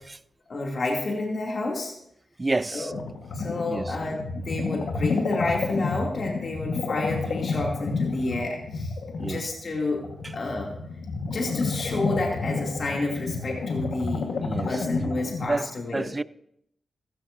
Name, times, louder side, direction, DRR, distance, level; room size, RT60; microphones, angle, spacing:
voice 1, 0.5-1.9 2.7-2.9 3.3-8.9 9.2-10.0 10.3-10.7 11.3-14.3 14.7-16.1, left 2 dB, 55° left, 2.6 m, -29 dB
voice 2, 2.4-2.9 3.7-3.9 9.2-9.5 10.2-10.3 14.4-14.9 15.4-16.2, right 2 dB, 30° right, 0.4 m, -29 dB
sound 1, 2.9-15.5, left 4 dB, 75° left, 1.4 m, -30 dB
15.0 x 14.5 x 2.7 m
cardioid pair, 60°, 0 cm